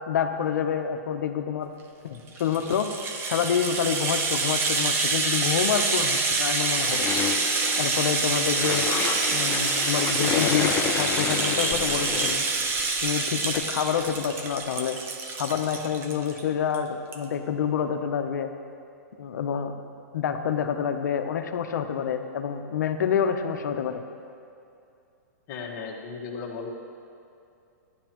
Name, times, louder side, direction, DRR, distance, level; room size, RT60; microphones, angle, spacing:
voice 1, 0.1-1.7 2.0-2.9 3.2-7.1 7.8-8.9 9.3-12.5 13.0-15.0 15.4-18.5 19.2-19.7 20.1-24.0, left 7 dB, 75° left, 7 dB, 0.8 m, -27 dB
Rattle (instrument), 2.3-16.4 16.7-16.8 17.1-17.2, right 4 dB, 25° right, 0.8 m, -27 dB
sound 1, 6.6-13.2 13.5-13.6 14.0-14.1 14.4-14.5 14.7-14.8, left 8 dB, 20° left, 0.5 m, -31 dB
voice 2, 25.5-26.7, left 5 dB, 40° left, 0 dB, 1.4 m, -35 dB
13.5 x 10.0 x 3.0 m, 2.6 s
hypercardioid pair, 140°, 10 cm